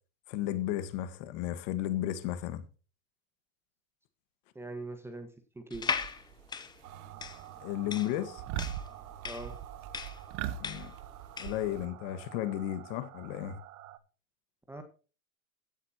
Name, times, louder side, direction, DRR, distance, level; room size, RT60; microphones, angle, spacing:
voice 1, 0.3-2.7 7.6-8.4 10.6-10.9 11.4-13.6, left 12 dB, 50° left, 1.7 m, -34 dB
voice 2, 4.5-5.3 5.5-6.1 9.2-9.5 14.7-14.8, right 2 dB, 5° right, 1.4 m, -42 dB
sound 1, 5.7-11.7, left 6 dB, 10° left, 0.7 m, -38 dB
sound 2, 5.7-6.4 6.8-7.4 7.7-8.0 8.4-11.9, right 11 dB, 40° right, 1.0 m, -40 dB
sound 3, 6.8-14.0, right 13 dB, 75° right, 1.3 m, -50 dB
16.0 x 8.2 x 2.9 m
supercardioid pair, 140°, 44 cm